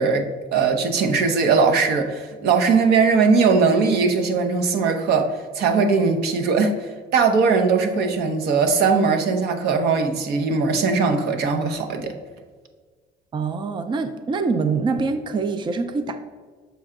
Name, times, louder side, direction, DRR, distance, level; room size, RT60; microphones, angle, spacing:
voice 1, 0.0-5.3 5.5-12.1, right 4 dB, 75° right, 6 dB, 0.8 m, -20 dB
voice 2, 13.3-16.2, right 4 dB, 30° right, 8 dB, 0.4 m, -24 dB
7.0 x 4.4 x 3.7 m, 1.5 s
cardioid pair, 110°, 17 cm